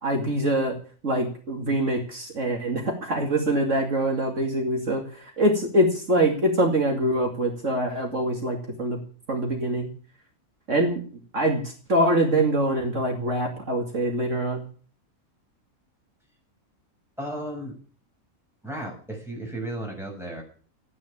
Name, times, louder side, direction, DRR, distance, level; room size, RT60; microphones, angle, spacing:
voice 1, 0.0-0.8 1.0-9.0 9.3-9.9 10.7-11.0 11.3-14.7, right 1 dB, 60° right, 1 dB, 2.8 m, -24 dB
voice 2, 17.2-17.8 18.6-20.4, right 1 dB, ahead, -1 dB, 6.8 m, -34 dB
14.0 x 9.6 x 8.7 m, 0.42 s
omnidirectional pair, 1.5 m